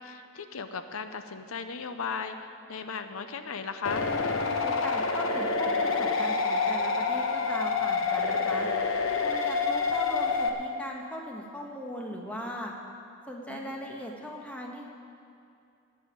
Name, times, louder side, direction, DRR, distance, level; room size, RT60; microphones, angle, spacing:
voice 1, 0.0-4.1 13.5-13.7, left 5 dB, 90° left, 9 dB, 0.7 m, -37 dB
sound 1, 3.8-10.5, left 4 dB, 75° left, 1.0 m, -27 dB
voice 2, 4.6-8.7 9.2-12.7 13.3-14.9, equal, 5° left, -1 dB, 1.4 m, -39 dB
16.5 x 5.7 x 9.5 m, 2.5 s
head